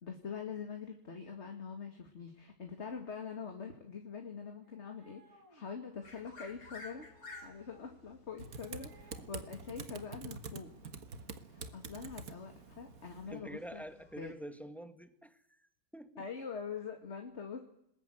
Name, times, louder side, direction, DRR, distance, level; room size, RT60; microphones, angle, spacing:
voice 1, 0.0-7.1 7.4-10.7 11.5-13.8 14.2-14.3 16.2-17.6, left 6 dB, 50° left, 2.4 m, -44 dB
sound 1, 4.6-5.7 6.7-8.0 8.4-9.3 9.6-10.1, right 1 dB, 90° right, 4.9 m, -63 dB
sound 2, 6.0-14.3, left 3 dB, 70° left, 4.1 m, -56 dB
Typing, 8.4-13.4, right 4 dB, 70° right, 1.9 m, -47 dB
voice 2, 13.3-16.2, right 1 dB, ahead, 1.5 m, -47 dB
29.5 x 20.5 x 9.2 m
omnidirectional pair, 1.5 m